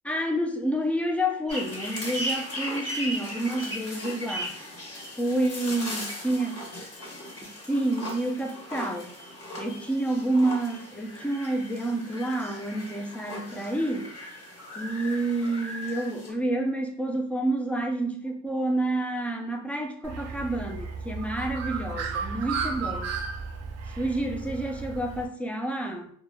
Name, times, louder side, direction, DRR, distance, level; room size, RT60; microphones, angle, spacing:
voice 1, 0.0-4.5 5.2-6.6 7.4-9.1 9.6-14.1 14.8-23.2 24.0-26.1, right 1 dB, 5° left, 3 dB, 0.4 m, -29 dB
sound 1, 1.5-16.3, equal, 50° left, 1.2 m, -37 dB
Bird, 20.0-25.2, right 5 dB, 55° right, 0.5 m, -34 dB
2.2 x 2.1 x 3.3 m, 0.62 s
cardioid pair, 90°, 30 cm